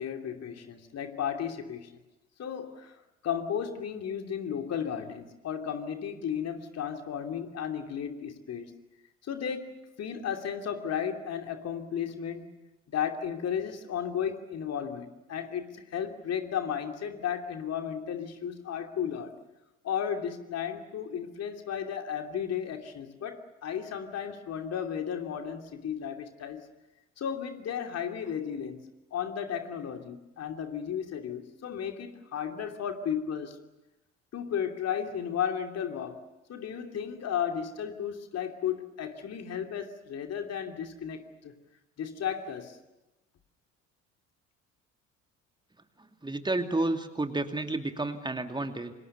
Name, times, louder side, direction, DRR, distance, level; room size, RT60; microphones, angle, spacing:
voice 1, 0.0-1.9 2.4-3.0 3.2-8.7 9.2-12.5 12.9-19.4 19.8-26.6 27.2-33.6 34.3-36.2 36.5-41.5 42.0-42.8, left 8 dB, 40° left, 5 dB, 2.9 m, -34 dB
voice 2, 46.0-48.9, right 2 dB, 10° right, 6 dB, 2.6 m, -31 dB
29.0 x 26.5 x 6.9 m, 0.99 s
figure-of-eight pair, 55°, 37 cm